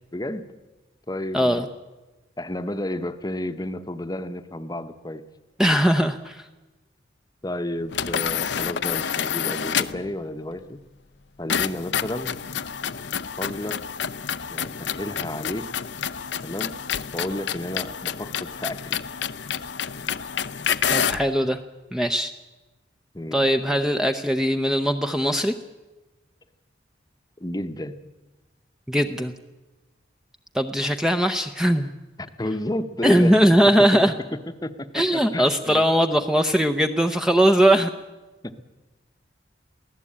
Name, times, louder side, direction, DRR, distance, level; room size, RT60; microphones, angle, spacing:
voice 1, 0.1-0.5 1.1-1.7 2.4-5.2 7.4-10.8 11.4-12.4 13.4-13.8 14.5-15.7 16.4-16.8 17.1-19.0 23.1-23.4 27.4-28.0 32.2-33.4 33.9-34.0 34.6-35.9 38.4-38.6, left 1 dB, 20° left, 10 dB, 0.9 m, -31 dB
voice 2, 1.3-1.6 5.6-6.5 20.9-21.6 21.9-22.3 23.3-25.5 28.9-29.3 30.5-31.9 33.0-34.1 34.9-37.9, equal, 5° right, 6 dB, 0.7 m, -20 dB
sound 1, 7.9-10.1 11.5-21.3, left 8 dB, 65° left, 0.7 m, -28 dB
23.0 x 16.0 x 8.6 m, 1.1 s
head